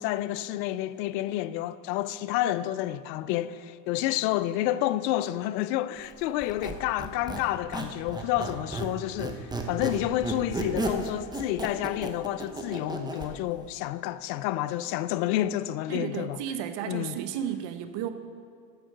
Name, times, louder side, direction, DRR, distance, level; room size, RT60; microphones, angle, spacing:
voice 1, 0.0-16.4 16.9-17.2, left 14 dB, 85° left, 0.6 m, -29 dB
Squeak, 6.4-8.9 9.2-13.3, right 2 dB, 10° right, 0.9 m, -33 dB
voice 2, 15.9-18.1, right 9 dB, 60° right, 1.0 m, -33 dB
14.0 x 4.7 x 6.5 m
supercardioid pair, 110°, 49 cm